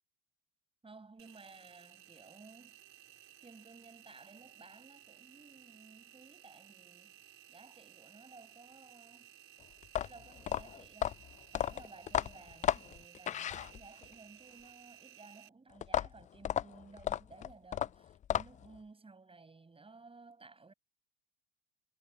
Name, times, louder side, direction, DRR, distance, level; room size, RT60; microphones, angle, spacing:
voice 1, 0.8-2.8 3.1-7.2 7.5-9.3 10.0-11.2 11.5-20.7, right 3 dB, 15° right, 6.4 m, -56 dB
Engine, 1.2-15.5, right 10 dB, 40° right, 4.3 m, -58 dB
sound 1, 9.8-14.1 15.8-18.8, left 10 dB, 20° left, 0.4 m, -34 dB
hypercardioid pair, 75°, 34 cm